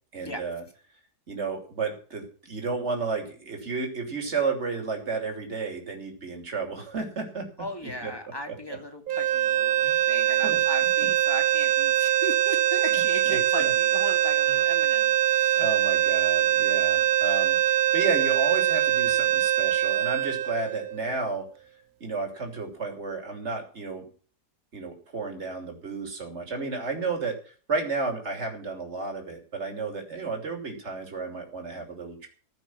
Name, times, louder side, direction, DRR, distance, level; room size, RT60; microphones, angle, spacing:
voice 1, 0.1-0.6 1.3-7.5 7.8-8.1 9.8-10.1 10.4-10.6 11.0-11.1 12.9-13.0 13.3-13.7 15.6-21.4 22.0-24.0 24.7-27.3 27.7-32.3, right 4 dB, 40° right, 3 dB, 3.3 m, -32 dB
voice 2, 7.6-15.6, equal, 15° left, 4 dB, 2.5 m, -37 dB
sound 1, 9.1-21.3, right 12 dB, 65° right, 1.2 m, -23 dB
15.5 x 5.9 x 9.4 m, 0.40 s
omnidirectional pair, 1.7 m